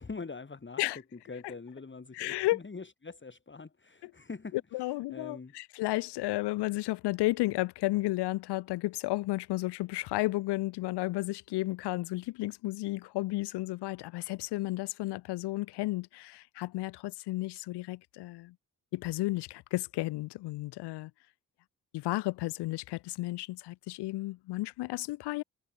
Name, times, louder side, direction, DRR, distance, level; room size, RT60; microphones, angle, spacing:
voice 1, 0.0-0.8 1.1-5.5, left 4 dB, 25° left, 2.0 m, -44 dB
voice 2, 2.1-2.6 4.7-18.5 18.9-21.1 21.9-25.4, left 19 dB, 75° left, 0.6 m, -33 dB
hypercardioid pair, 40°, 41 cm